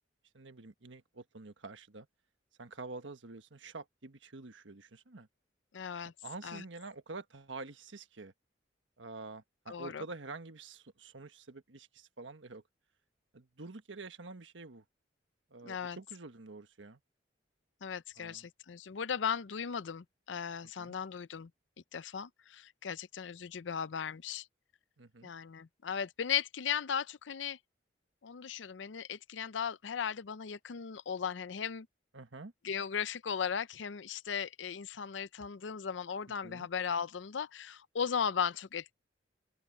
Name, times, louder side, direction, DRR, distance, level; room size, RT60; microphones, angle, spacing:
voice 1, 0.3-2.1 2.6-5.3 6.2-8.3 9.0-12.6 13.3-14.8 15.5-17.0 18.2-18.5 20.8-20.9 25.0-25.3 32.1-32.5 36.4-36.7, right 3 dB, 85° right, 1.4 m, -47 dB
voice 2, 5.7-6.1 6.4-6.6 9.7-10.0 15.6-16.0 17.8-21.5 21.9-24.5 25.2-27.6 28.2-31.9 32.6-38.9, left 7 dB, 75° left, 0.5 m, -37 dB
open air
head